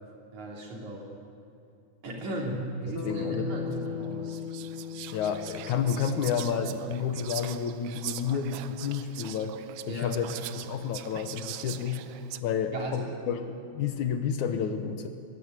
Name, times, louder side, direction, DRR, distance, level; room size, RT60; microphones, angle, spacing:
voice 1, 0.3-1.1 2.0-4.4 9.9-10.1 12.7-13.1, right 1 dB, 60° right, -1 dB, 4.6 m, -35 dB
Bass guitar, 2.9-7.3, left 6 dB, 45° left, 0.4 m, -38 dB
voice 2, 3.0-3.5 5.1-9.6 9.9-10.3 10.5-12.0 12.4-15.1, left 7 dB, 70° left, 7 dB, 2.4 m, -30 dB
Whispering, 3.7-3.8 4.3-12.4, right 14 dB, 80° right, 2.1 m, -42 dB
23.5 x 13.5 x 9.7 m, 2.5 s
omnidirectional pair, 3.7 m